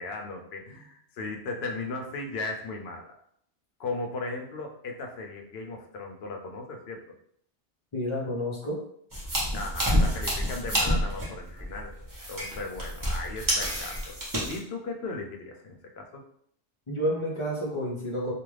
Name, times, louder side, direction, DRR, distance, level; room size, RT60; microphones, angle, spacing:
voice 1, 0.0-3.1 3.8-7.0 9.5-11.9 12.3-14.2 14.5-16.2, left 3 dB, 70° left, 3 dB, 0.8 m, -36 dB
voice 2, 7.9-8.8 16.9-18.3, equal, 35° left, -4 dB, 0.5 m, -30 dB
sound 1, 9.1-14.6, equal, 20° right, 0.6 m, -28 dB
2.4 x 2.3 x 3.1 m, 0.67 s
omnidirectional pair, 1.2 m